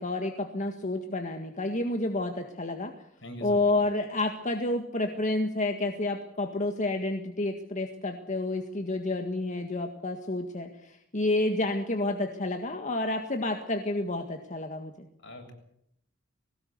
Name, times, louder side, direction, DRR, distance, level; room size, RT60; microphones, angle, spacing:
voice 1, 0.0-2.9 3.4-15.1, left 2 dB, 40° left, 5 dB, 1.8 m, -30 dB
voice 2, 3.2-3.6 15.2-15.5, equal, 65° left, 4 dB, 7.5 m, -42 dB
21.5 x 19.0 x 8.0 m, 0.74 s
head